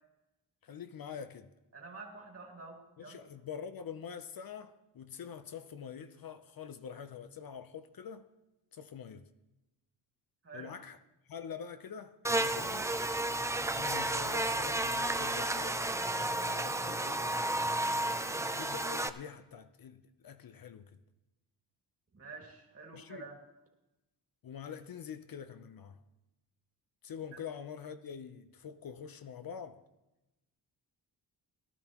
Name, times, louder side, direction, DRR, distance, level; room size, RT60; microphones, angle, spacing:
voice 1, 0.6-1.5 3.0-8.3 8.7-9.3 10.5-11.0 11.3-12.9 13.7-15.8 16.1-17.4 18.2-21.0 22.9-23.3 24.4-26.0 27.0-29.8, left 7 dB, 55° left, 0.7 m, -45 dB
voice 2, 1.7-3.2 10.4-10.7 22.1-23.4 27.3-27.4, right 4 dB, 35° right, 2.2 m, -48 dB
Buzz, 12.2-19.1, right 1 dB, 10° right, 0.3 m, -32 dB
18.0 x 12.0 x 3.0 m
wide cardioid pair, 125°, 41 cm